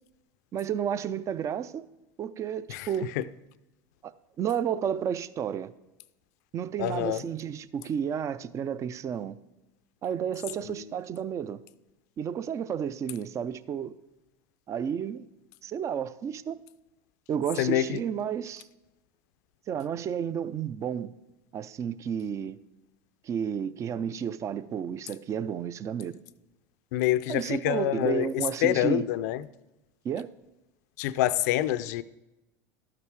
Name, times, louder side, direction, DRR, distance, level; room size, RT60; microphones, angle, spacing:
voice 1, 0.5-1.8 2.2-3.1 4.0-4.1 4.4-5.7 6.5-9.4 10.0-11.6 12.2-13.9 14.7-15.3 15.6-16.6 17.3-18.7 19.7-21.1 21.5-22.6 23.2-26.2 27.3-29.1 30.0-30.3, right 8 dB, 35° right, 0.4 m, -31 dB
voice 2, 6.8-7.2 10.6-10.9 17.6-18.0 26.9-29.5 31.0-32.0, left 14 dB, 75° left, 0.5 m, -27 dB
13.0 x 5.9 x 4.7 m
supercardioid pair, 110°, 9 cm